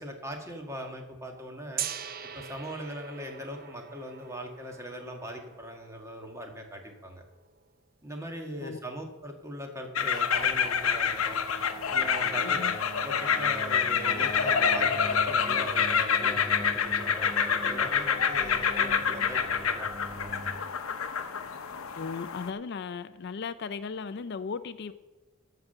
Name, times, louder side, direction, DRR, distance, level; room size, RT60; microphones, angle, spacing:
voice 1, 0.0-1.8 2.3-7.2 8.0-11.4 11.9-12.6 12.9-20.5, equal, 15° right, 1.6 m, -41 dB
Gong, 1.8-7.7, right 9 dB, 45° right, 0.7 m, -42 dB
sound 1, 10.0-22.5, left 7 dB, 90° left, 0.8 m, -27 dB
sound 2, 10.3-20.6, equal, 15° left, 2.9 m, -41 dB
voice 2, 12.4-12.8 22.0-24.9, left 5 dB, 55° left, 0.4 m, -36 dB
14.5 x 5.9 x 6.6 m
head